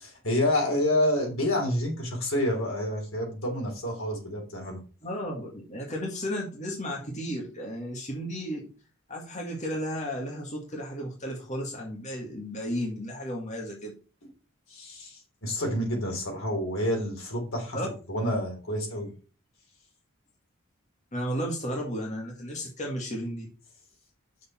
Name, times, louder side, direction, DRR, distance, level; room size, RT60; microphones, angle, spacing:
voice 1, 0.0-4.8 14.7-17.8 18.1-19.1, left 1 dB, 75° left, 1 dB, 3.6 m, -28 dB
voice 2, 5.0-8.7 9.1-13.9 17.7-17.9 21.1-23.5, equal, 35° left, -1 dB, 1.9 m, -33 dB
8.3 x 6.6 x 4.4 m, 0.35 s
head